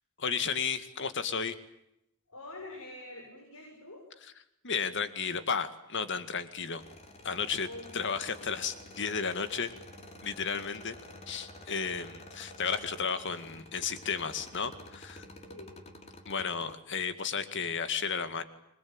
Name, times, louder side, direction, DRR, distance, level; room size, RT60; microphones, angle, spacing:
voice 1, 0.2-1.6 4.6-6.8 7.2-7.7 7.9-9.7 10.2-11.0 11.3-15.2 16.3-18.4, left 6 dB, 55° left, 11 dB, 2.1 m, -33 dB
voice 2, 2.3-4.0 7.6-7.9 8.3-8.5 15.5-15.8, left 2 dB, 90° left, 1 dB, 7.3 m, -46 dB
sound 1, 6.8-16.8, left 1 dB, 30° left, 3.3 m, -50 dB
27.5 x 22.0 x 8.9 m, 0.82 s
head